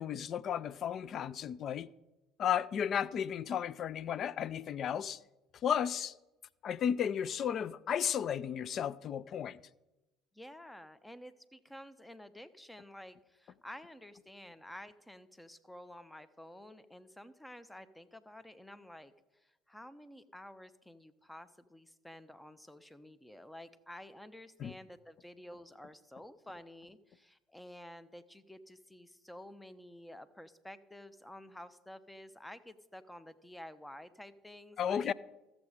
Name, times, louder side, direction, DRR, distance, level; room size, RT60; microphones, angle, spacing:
voice 1, 0.0-1.9 2.4-5.2 5.6-6.1 6.6-9.6 24.6-24.7 34.8-35.1, left 8 dB, 50° left, 0.4 m, -34 dB
voice 2, 10.3-19.1 19.4-35.1, left 1 dB, 10° left, 0.8 m, -51 dB
14.0 x 7.4 x 5.0 m
hypercardioid pair, 60°, 0 cm